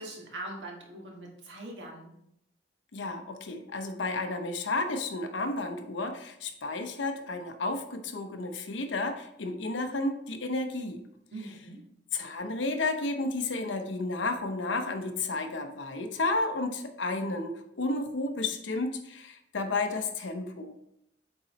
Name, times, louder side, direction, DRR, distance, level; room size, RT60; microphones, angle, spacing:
voice 1, 0.0-2.2 11.3-11.9, right 1 dB, 75° right, -1 dB, 1.6 m, -42 dB
voice 2, 2.9-11.0 12.1-20.7, left 2 dB, 85° left, 6 dB, 0.8 m, -32 dB
8.1 x 3.9 x 3.1 m, 0.75 s
head